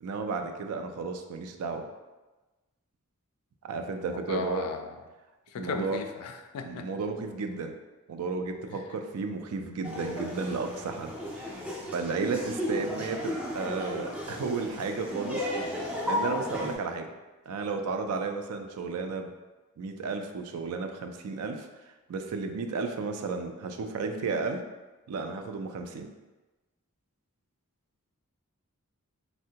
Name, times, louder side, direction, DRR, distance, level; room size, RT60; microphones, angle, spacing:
voice 1, 0.0-1.9 3.6-4.6 5.6-6.0 6.6-7.7 8.1-11.1 11.9-15.5 15.7-17.1 17.5-19.3 19.8-21.7 22.1-24.6 25.1-26.1, right 4 dB, 80° right, 6 dB, 0.3 m, -33 dB
voice 2, 4.0-4.9 5.5-6.9 8.7-8.8, left 5 dB, 80° left, 6 dB, 0.3 m, -36 dB
Laughter, 9.8-16.7, left 1 dB, 5° right, 0.3 m, -34 dB
3.5 x 2.1 x 2.7 m, 1.2 s
head